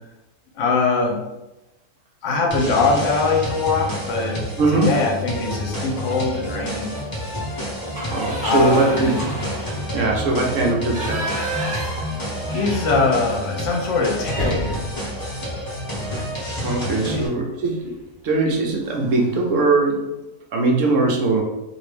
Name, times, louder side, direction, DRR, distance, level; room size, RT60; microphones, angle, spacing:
voice 1, 0.6-1.2 2.2-4.4 4.7-7.0 8.4-9.2 9.9-10.1 12.5-14.8 17.1-17.3, left 3 dB, 65° left, 0 dB, 1.0 m, -22 dB
sound 1, 2.5-17.3, left 1 dB, 30° left, 0.4 m, -29 dB
voice 2, 4.6-4.9 8.1-9.1 9.9-11.2 16.6-17.9 18.2-20.0 20.5-21.4, right 3 dB, 70° right, 0 dB, 0.9 m, -20 dB
sound 2, 6.1-6.5 6.9-7.0 7.4-13.4 13.7-13.8 14.2-16.4 17.7-18.0 18.4-18.5 18.8-19.4, right 1 dB, 35° right, 1.0 m, -32 dB
2.9 x 2.6 x 3.4 m, 0.98 s
omnidirectional pair, 1.5 m